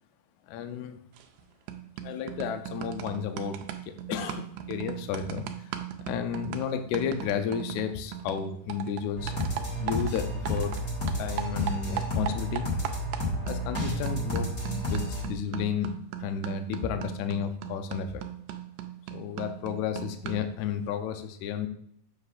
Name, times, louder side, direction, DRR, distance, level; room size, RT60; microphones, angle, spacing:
voice 1, 0.5-1.0 2.0-9.3 9.8-10.8 11.2-12.7 13.4-15.9 16.2-18.2 19.1-21.7, left 8 dB, 80° left, 7 dB, 1.8 m, -32 dB
sound 1, 1.2-1.4 1.7-10.8 11.1-20.6, right 11 dB, 80° right, 2.1 m, -38 dB
sound 2, 9.2-15.2, equal, 40° left, 1.5 m, -31 dB
7.9 x 5.7 x 2.5 m, 0.69 s
omnidirectional pair, 3.8 m